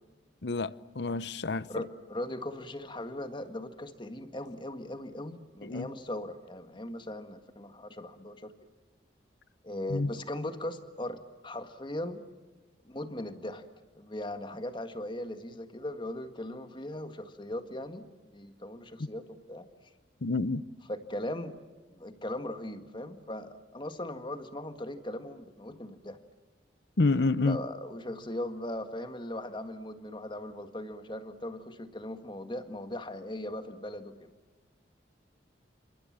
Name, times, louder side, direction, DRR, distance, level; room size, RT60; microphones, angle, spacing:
voice 1, 0.4-1.8 5.6-5.9 9.9-10.1 20.2-20.6 27.0-27.6, left 3 dB, 65° left, 0.8 m, -28 dB
voice 2, 1.7-8.5 9.6-12.3 12.9-13.6 14.0-19.7 20.9-21.6 21.9-26.2 27.4-34.3, left 1 dB, 25° left, 1.8 m, -39 dB
29.5 x 27.0 x 7.5 m
head